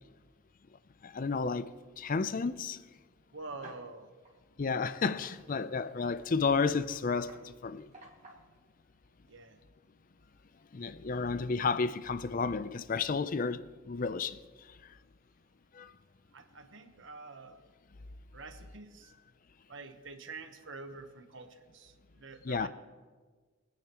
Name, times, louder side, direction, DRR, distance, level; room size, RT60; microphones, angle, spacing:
voice 1, 1.0-1.7 2.0-2.8 4.6-7.9 10.7-14.4 15.8-15.9 22.4-22.7, left 4 dB, 40° left, 0.5 m, -32 dB
voice 2, 3.3-4.1 9.3-9.6 16.3-17.6 18.3-19.1 19.7-22.7, right 3 dB, 60° right, 1.0 m, -47 dB
sound 1, 3.6-3.9 4.2-4.4 4.9-8.5, right 1 dB, 35° right, 2.0 m, -54 dB
24.0 x 9.8 x 3.0 m
head